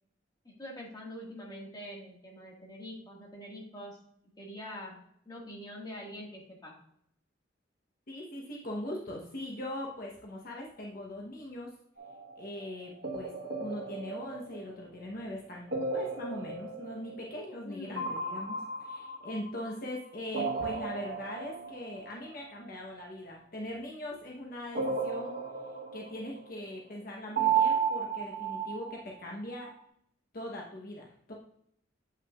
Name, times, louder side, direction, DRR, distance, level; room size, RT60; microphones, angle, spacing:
voice 1, 0.4-4.0 4.4-5.0 5.3-6.8 17.6-18.1, left 1 dB, 20° left, -2 dB, 1.8 m, -44 dB
voice 2, 8.1-11.7 12.4-13.3 13.6-25.4 25.9-29.7 30.3-31.3, left 1 dB, 50° left, -1 dB, 1.0 m, -41 dB
sound 1, 12.0-12.5 13.0-15.1 15.7-17.7 18.0-19.9 20.3-22.1 24.7-26.6 27.4-29.3, right 5 dB, 60° right, 1.2 m, -34 dB
8.2 x 5.7 x 2.4 m, 0.71 s
head